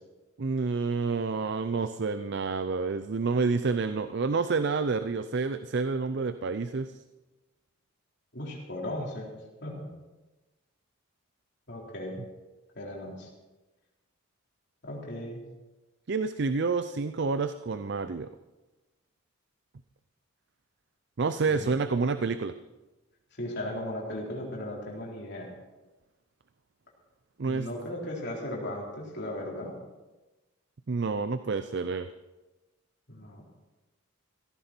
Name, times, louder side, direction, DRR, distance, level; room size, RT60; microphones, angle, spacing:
voice 1, 0.4-6.9 16.1-18.3 21.2-22.5 27.4-27.7 30.9-32.1, right 4 dB, 50° right, 11 dB, 0.5 m, -28 dB
voice 2, 8.3-9.3 9.6-9.8 11.7-12.2 12.7-13.3 14.8-15.4 21.5-21.7 23.4-25.5 27.4-29.7 33.1-33.4, left 1 dB, 50° left, -3 dB, 4.1 m, -36 dB
16.5 x 14.5 x 4.4 m, 1.1 s
head